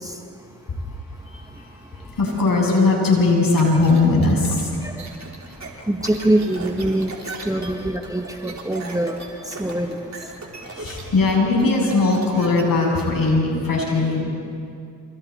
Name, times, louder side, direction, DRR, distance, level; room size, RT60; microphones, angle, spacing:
voice 1, 0.0-0.8 1.4-1.6 1.9-2.1 4.8-10.9, right 1 dB, 10° right, 4 dB, 1.6 m, -26 dB
voice 2, 0.8-5.9 10.5-14.2, left 3 dB, 55° left, -1 dB, 7.9 m, -20 dB
sound 1, 3.6-12.6, right 3 dB, 40° right, 4.6 m, -38 dB
27.5 x 27.5 x 4.4 m, 2.3 s
supercardioid pair, 55°, 41 cm